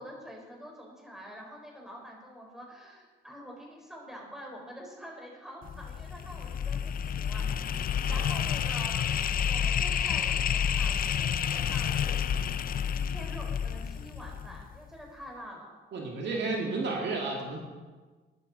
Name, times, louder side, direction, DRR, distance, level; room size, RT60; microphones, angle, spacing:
voice 1, 0.0-9.0 9.5-12.2 12.9-15.7, equal, ahead, -1 dB, 4.2 m, -46 dB
sound 1, 5.6-14.8, left 8 dB, 45° left, 0.5 m, -30 dB
voice 2, 15.9-17.6, right 3 dB, 60° right, 0 dB, 2.1 m, -32 dB
13.0 x 11.0 x 4.1 m, 1.3 s
cardioid pair, 90°, 20 cm